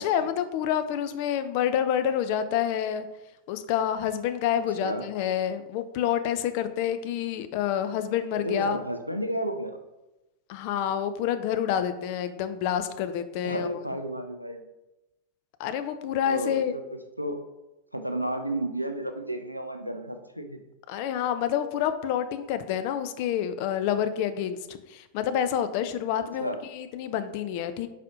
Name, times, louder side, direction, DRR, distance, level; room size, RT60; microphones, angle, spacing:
voice 1, 0.0-3.1 3.5-8.8 10.5-13.8 15.6-16.8 20.9-27.9, left 9 dB, 45° left, 10 dB, 0.4 m, -28 dB
voice 2, 8.4-9.8 13.4-14.6 16.2-16.7 17.2-17.4 17.9-20.6 26.2-26.6, right 1 dB, 90° right, 7 dB, 0.4 m, -32 dB
4.8 x 4.1 x 2.6 m, 0.99 s
figure-of-eight pair, 90°, 0 cm